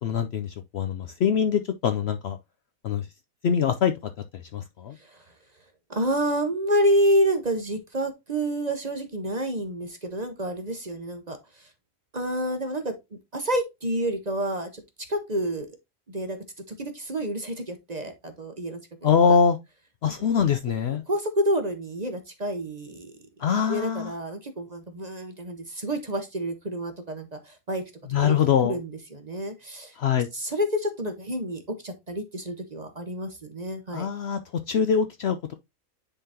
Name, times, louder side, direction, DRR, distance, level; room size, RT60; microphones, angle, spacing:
voice 1, 0.0-2.4 2.8-3.0 3.4-3.9 4.5-4.9 19.0-19.6 20.0-21.0 23.4-24.1 28.1-28.8 30.0-30.3 33.9-34.4 34.7-35.5, left 7 dB, 65° left, 0.7 m, -23 dB
voice 2, 5.9-11.7 12.1-12.9 13.3-14.8 15.1-15.7 16.1-16.4 16.7-19.4 20.0-20.1 21.1-23.1 23.7-27.8 28.2-28.4 28.6-29.9 30.3-34.1, equal, 35° right, 0.8 m, -28 dB
10.0 x 3.8 x 2.8 m
omnidirectional pair, 1.5 m